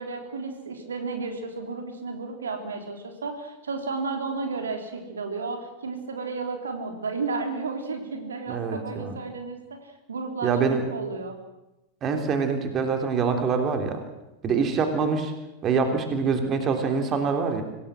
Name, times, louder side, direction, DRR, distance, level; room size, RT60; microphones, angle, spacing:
voice 1, 0.0-10.6 10.9-11.4, right 4 dB, 70° right, 4 dB, 3.5 m, -33 dB
voice 2, 8.5-9.2 10.4-10.8 12.0-14.0 14.4-15.3 15.6-17.6, right 5 dB, 30° right, 5 dB, 3.5 m, -25 dB
25.5 x 18.0 x 7.6 m, 0.96 s
figure-of-eight pair, 90°, 0 cm